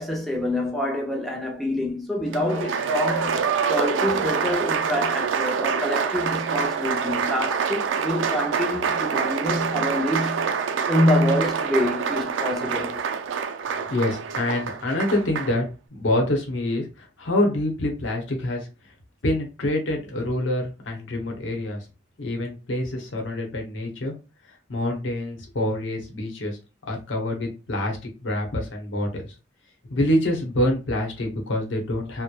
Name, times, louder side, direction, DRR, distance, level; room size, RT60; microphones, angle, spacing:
voice 1, 0.0-10.6 10.9-13.0, left 1 dB, ahead, 0.5 m, -26 dB
Applause, 2.3-15.6, right 6 dB, 90° right, 0.3 m, -26 dB
voice 2, 13.9-15.6 15.9-18.7 19.2-21.8 22.2-24.1 24.7-26.6 26.9-29.2 29.9-32.2, left 1 dB, 85° left, 0.8 m, -26 dB
2.8 x 2.1 x 2.2 m
head